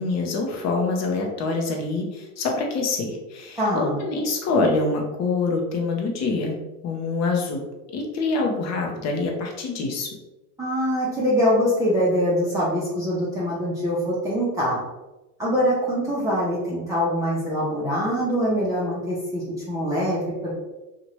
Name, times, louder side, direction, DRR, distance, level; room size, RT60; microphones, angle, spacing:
voice 1, 0.0-6.6 6.8-7.6 7.9-10.1, left 3 dB, 35° left, 2 dB, 0.8 m, -25 dB
voice 2, 3.6-4.0 10.6-14.8 15.4-20.5, equal, 5° right, -9 dB, 0.7 m, -23 dB
2.8 x 2.5 x 3.0 m, 1.0 s
hypercardioid pair, 100°, 46 cm